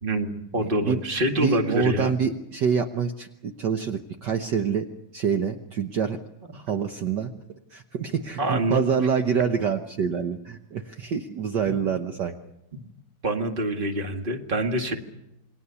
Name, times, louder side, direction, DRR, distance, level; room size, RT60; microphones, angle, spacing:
voice 1, 0.0-2.1 8.4-8.8 11.7-11.8 12.7-12.9 13.2-15.0, right 1 dB, 25° right, 4 dB, 2.1 m, -26 dB
voice 2, 0.6-1.0 1.4-4.9 5.1-6.2 6.5-7.3 7.7-12.4, right 7 dB, 60° right, 6 dB, 1.5 m, -26 dB
28.0 x 21.5 x 7.0 m, 0.85 s
omnidirectional pair, 2.3 m